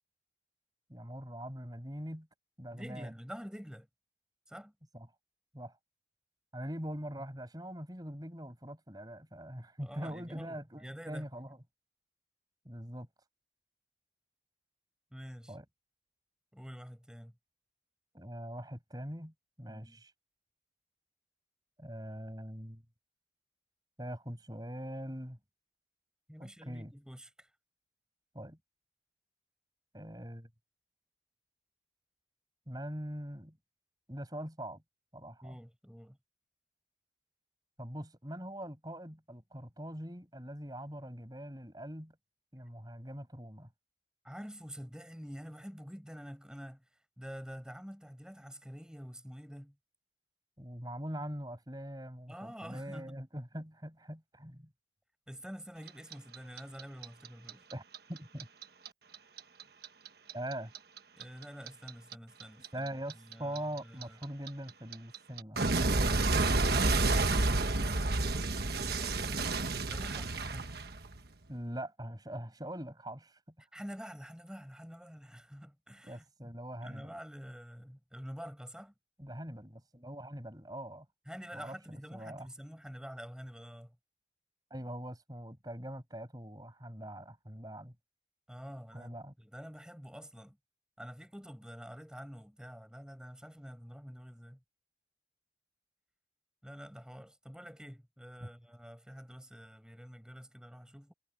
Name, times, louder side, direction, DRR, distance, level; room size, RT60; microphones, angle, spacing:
voice 1, 0.9-2.3 2.6-3.1 4.9-5.1 5.5-5.8 6.5-11.6 12.7-13.1 15.5-15.6 18.1-20.1 21.8-22.8 24.0-25.4 26.4-26.9 28.3-28.6 29.9-30.5 32.7-33.6 34.1-34.8 35.1-35.6 37.8-42.2 42.5-43.7 50.6-54.7 57.7-57.8 58.1-58.5 60.3-60.7 62.7-66.1 71.5-73.4 76.0-77.2 79.2-81.1 81.5-82.5 84.7-87.9 88.9-89.3 98.4-98.5, equal, 20° right, 7.1 m, -43 dB
voice 2, 2.7-3.9 4.5-4.7 9.8-11.3 15.1-15.5 16.5-17.3 19.7-20.0 26.3-27.5 35.4-36.2 44.2-46.8 47.2-49.7 52.3-53.2 55.3-57.7 61.2-62.9 63.1-64.2 68.6-70.7 73.6-76.5 76.8-78.9 81.3-83.9 88.5-90.6 91.0-94.6 96.6-101.1, equal, 5° right, 6.7 m, -48 dB
Clock, 55.9-58.9 59.1-62.1 62.4-71.3, right 2 dB, 55° right, 1.3 m, -30 dB
head